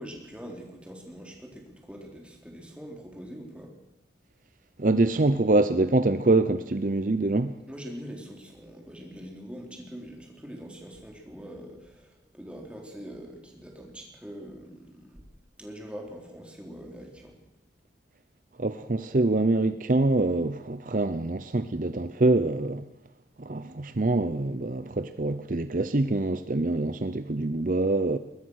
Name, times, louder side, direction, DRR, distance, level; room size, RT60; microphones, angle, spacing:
voice 1, 0.0-3.7 7.7-15.2 15.6-17.4, equal, 5° right, 3.7 m, -43 dB
voice 2, 4.8-7.5 18.6-22.8 23.4-28.2, right 2 dB, 45° right, 0.7 m, -25 dB
22.0 x 20.0 x 6.4 m
head